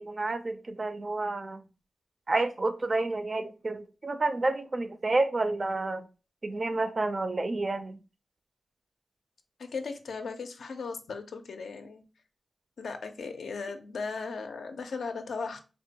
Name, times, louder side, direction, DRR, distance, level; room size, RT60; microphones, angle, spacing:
voice 1, 0.0-1.6 2.3-6.0 6.4-8.0, right 2 dB, 45° right, 0.4 m, -30 dB
voice 2, 9.6-12.0 12.8-15.6, left 4 dB, 85° left, 0.4 m, -37 dB
3.5 x 2.1 x 2.7 m
cardioid pair, 50°, 0 cm